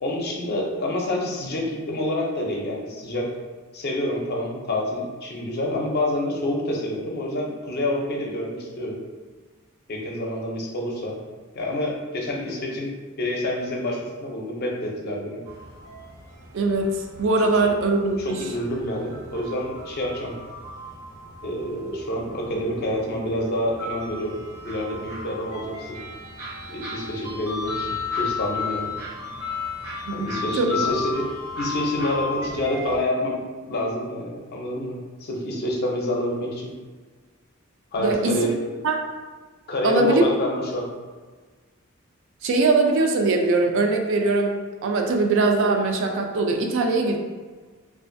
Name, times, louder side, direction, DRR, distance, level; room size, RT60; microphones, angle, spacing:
voice 1, 0.0-3.3 3.7-9.0 9.9-11.1 11.5-15.4 18.2-20.3 21.4-26.0 26.7-28.9 30.1-31.3 31.6-36.8 37.9-38.5 39.7-40.9, left 1 dB, 50° left, -1 dB, 0.5 m, -28 dB
sound 1, 15.5-33.0, left 4 dB, 85° right, 0.8 m, -34 dB
voice 2, 16.5-18.4 30.1-30.9 38.0-38.4 38.8-39.0 39.8-40.2 42.4-47.2, right 3 dB, 60° right, 3 dB, 0.3 m, -21 dB
2.5 x 2.3 x 2.5 m, 1.4 s
head